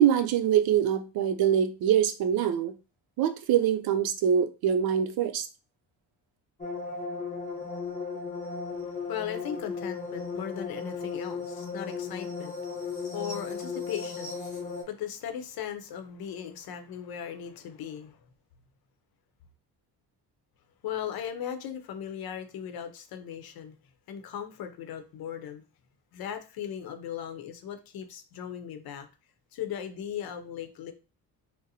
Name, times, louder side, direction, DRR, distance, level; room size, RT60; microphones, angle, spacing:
voice 1, 0.0-2.7 3.2-5.5, right 9 dB, 70° right, 0.6 m, -24 dB
sound 1, 6.6-14.8, left 4 dB, 20° left, 0.8 m, -36 dB
voice 2, 8.9-18.2 20.8-23.7 24.1-25.6 26.1-29.1 29.5-30.9, left 9 dB, 65° left, 0.7 m, -38 dB
4.0 x 2.0 x 2.7 m
cardioid pair, 130°, 39 cm